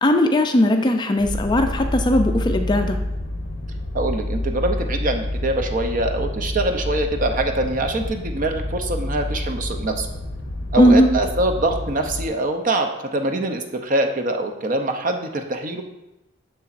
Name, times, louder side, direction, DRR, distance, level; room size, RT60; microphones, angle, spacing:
voice 1, 0.0-3.0 10.8-11.1, left 1 dB, 20° left, 6 dB, 0.4 m, -18 dB
sound 1, 1.2-12.3, left 1 dB, 55° left, 0.8 m, -28 dB
voice 2, 3.9-10.1 10.7-15.8, right 2 dB, 40° right, 5 dB, 0.6 m, -24 dB
6.9 x 6.9 x 2.5 m, 0.97 s
head